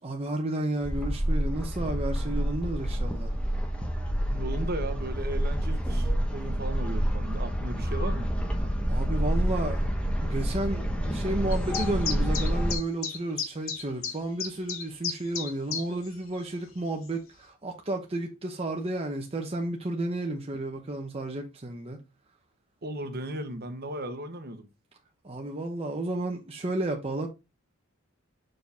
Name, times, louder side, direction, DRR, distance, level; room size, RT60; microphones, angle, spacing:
voice 1, 0.0-3.4 8.9-9.8 10.2-22.0 25.2-27.3, right 2 dB, 30° right, 0.8 m, -32 dB
sound 1, 0.8-12.7, equal, 5° left, 1.0 m, -28 dB
voice 2, 4.3-8.3 22.8-24.7, right 1 dB, 45° right, 1.1 m, -36 dB
sound 2, 11.5-16.1 16.4-16.5 17.1-17.2, left 7 dB, 65° left, 1.3 m, -33 dB
6.4 x 4.6 x 3.5 m
head